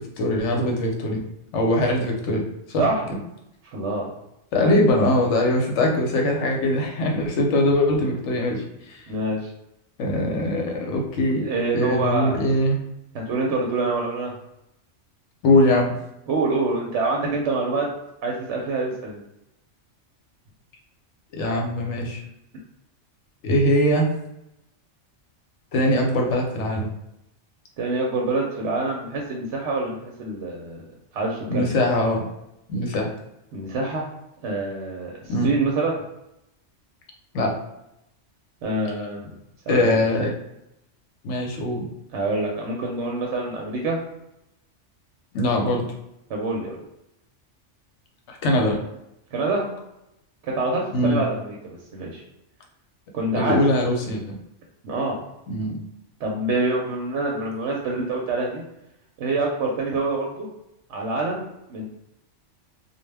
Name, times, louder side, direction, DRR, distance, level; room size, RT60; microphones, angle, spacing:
voice 1, 0.2-1.2 1.5-2.4 2.7-2.9 4.5-9.0 10.0-12.8 15.4-15.9 21.3-22.2 23.4-24.1 25.7-26.9 31.5-32.2 32.7-33.1 35.3-35.5 37.3-37.5 39.7-40.3 41.2-41.9 45.3-45.9 48.3-48.8 50.9-51.2 53.4-54.4 55.5-55.8, left 1 dB, 75° left, 1 dB, 1.0 m, -22 dB
voice 2, 3.7-4.1 9.1-9.5 11.4-12.3 13.1-14.3 16.3-17.9 18.2-19.2 27.8-30.8 31.1-31.7 33.5-34.0 34.4-35.1 35.4-36.0 38.6-39.2 39.7-40.0 42.1-44.1 46.3-46.8 49.3-49.7 50.4-52.2 53.1-53.6 54.8-55.2 56.2-58.6 59.2-60.5 60.9-61.8, right 3 dB, 75° right, -1 dB, 0.8 m, -26 dB
2.2 x 2.1 x 3.2 m, 0.85 s
omnidirectional pair, 1.2 m